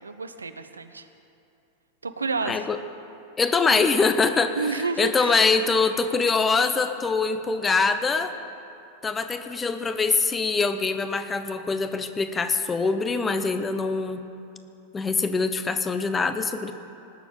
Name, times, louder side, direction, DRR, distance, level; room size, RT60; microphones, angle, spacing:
voice 1, 0.0-1.0 2.0-2.7 4.6-5.4, right 4 dB, 75° right, 9 dB, 0.8 m, -30 dB
voice 2, 2.4-2.8 3.4-8.3 9.0-14.2 14.9-16.7, left 4 dB, 15° left, 9 dB, 0.9 m, -24 dB
18.5 x 7.2 x 8.7 m, 2.7 s
figure-of-eight pair, 90°, 0 cm